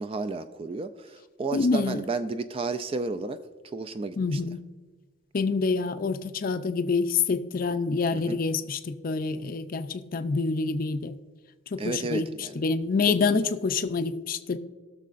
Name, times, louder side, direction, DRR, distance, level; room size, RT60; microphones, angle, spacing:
voice 1, 0.0-3.4 3.7-4.4 8.1-8.4 11.8-12.6 13.1-13.2, right 3 dB, 30° right, 10 dB, 0.3 m, -32 dB
voice 2, 1.5-2.0 4.2-4.6 5.3-11.2 11.7-14.6, left 4 dB, 45° left, 9 dB, 0.4 m, -27 dB
18.5 x 6.5 x 2.5 m, 1.4 s
head